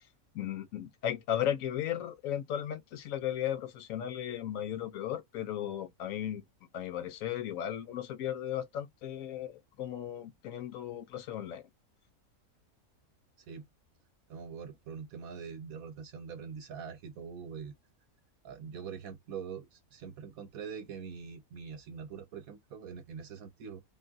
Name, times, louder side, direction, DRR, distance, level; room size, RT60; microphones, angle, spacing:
voice 1, 0.3-6.4 6.7-11.6, left 10 dB, 70° left, 0.9 m, -36 dB
voice 2, 14.3-17.7 18.4-23.8, right 6 dB, 75° right, 1.0 m, -43 dB
3.5 x 2.4 x 3.8 m
omnidirectional pair, 1.6 m